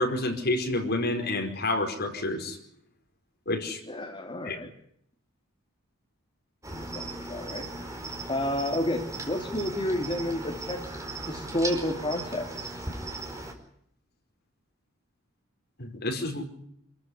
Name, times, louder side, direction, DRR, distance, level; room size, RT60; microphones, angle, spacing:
voice 1, 0.0-2.6 3.5-3.8 4.4-4.6 15.8-16.5, left 2 dB, 50° left, 3 dB, 5.0 m, -29 dB
voice 2, 3.9-4.7 6.7-7.7 8.3-10.9 11.3-12.7, left 1 dB, 25° left, 1 dB, 2.8 m, -31 dB
Cricket, 6.6-13.5, right 2 dB, 15° right, 4.5 m, -37 dB
27.5 x 14.5 x 9.8 m, 0.70 s
head